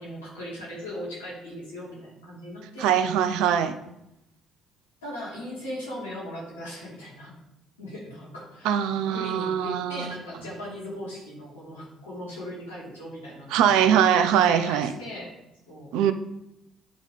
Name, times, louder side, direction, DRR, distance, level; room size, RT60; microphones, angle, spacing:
voice 1, 0.0-2.9 3.8-3.9 5.0-7.3 7.8-8.8 9.1-13.7 14.3-15.3 15.7-15.9, equal, 90° left, -6 dB, 2.8 m, -38 dB
voice 2, 2.8-3.8 8.6-10.1 13.5-14.9 15.9-16.1, right 9 dB, 70° right, 11 dB, 0.6 m, -22 dB
9.9 x 3.8 x 5.4 m, 0.85 s
hypercardioid pair, 50°, 0 cm